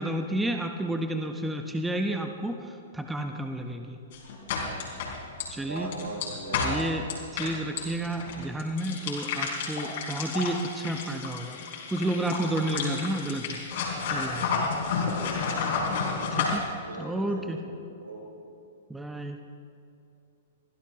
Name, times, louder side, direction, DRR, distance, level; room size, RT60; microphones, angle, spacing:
voice 1, 0.0-4.0 5.5-5.9 6.6-7.0 7.3-11.6 11.9-14.7 16.3-16.6 17.0-17.6 18.9-19.4, right 1 dB, 5° right, 5 dB, 1.0 m, -31 dB
sound 1, 4.1-16.6, left 5 dB, 55° left, 4.6 m, -31 dB
voice 2, 5.6-6.8 15.1-15.4 16.3-16.4 16.8-17.7 18.0-18.5, right 2 dB, 80° right, -1 dB, 4.2 m, -39 dB
24.5 x 16.0 x 3.0 m, 2.7 s
figure-of-eight pair, 110°, 0 cm